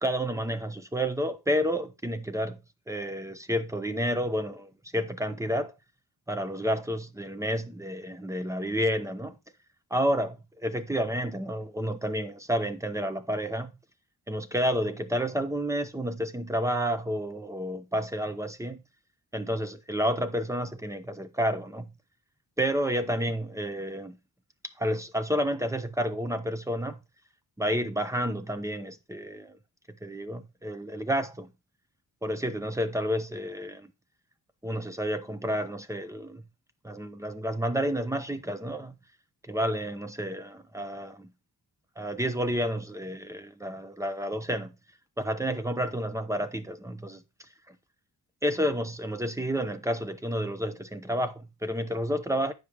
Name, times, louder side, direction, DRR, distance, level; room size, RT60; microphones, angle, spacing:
voice 1, 0.0-2.6 2.9-5.7 6.3-9.3 9.9-13.7 14.3-18.8 19.3-21.9 22.6-24.2 24.8-27.0 27.6-29.6 30.0-31.5 32.2-33.9 34.6-36.4 36.8-38.9 39.5-41.3 42.0-44.7 45.2-47.2 47.7-47.8 48.4-52.5, equal, 5° right, 0.6 m, -30 dB
9.3 x 6.9 x 3.3 m
wide cardioid pair, 175°, 42 cm